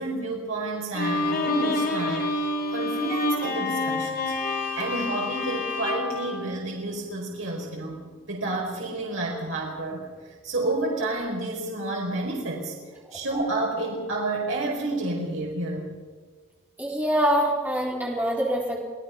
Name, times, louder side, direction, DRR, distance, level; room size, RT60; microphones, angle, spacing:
voice 1, 0.0-8.0 8.3-10.1 10.4-12.7 13.1-15.9, right 2 dB, 70° right, -2 dB, 4.7 m, -30 dB
Bowed string instrument, 0.9-7.2, left 2 dB, 45° left, 2.3 m, -28 dB
voice 2, 16.8-18.8, equal, 10° right, -3 dB, 4.2 m, -24 dB
26.5 x 17.5 x 5.9 m, 1.5 s
head